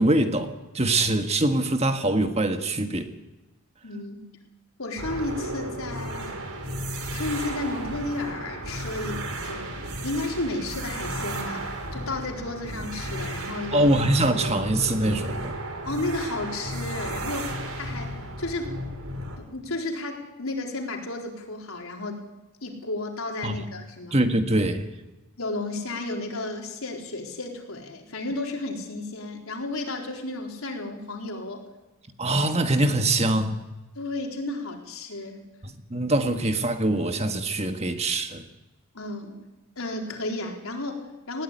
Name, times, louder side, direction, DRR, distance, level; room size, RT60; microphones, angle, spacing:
voice 1, 0.0-3.1 13.7-15.6 23.4-23.6 24.1-24.9 32.2-33.6 35.6-38.5, right 1 dB, 30° right, 7 dB, 1.6 m, -23 dB
voice 2, 3.8-4.3 4.8-6.4 7.1-13.9 15.9-18.8 19.4-22.2 22.6-24.1 25.4-31.6 34.0-35.4 38.9-39.4 39.8-41.4, left 2 dB, 75° left, 2 dB, 4.2 m, -33 dB
sound 1, 5.0-19.4, right 1 dB, 80° right, 4.5 m, -34 dB
20.0 x 16.5 x 10.0 m, 1.1 s
head